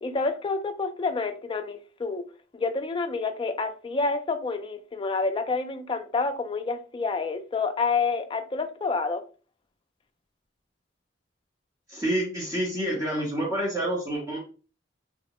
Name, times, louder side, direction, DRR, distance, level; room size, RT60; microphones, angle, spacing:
voice 1, 0.0-2.2 2.5-9.2, left 4 dB, 25° left, 0.3 m, -28 dB
voice 2, 11.9-14.4, right 1 dB, 20° right, 0.7 m, -28 dB
3.5 x 2.0 x 2.9 m
head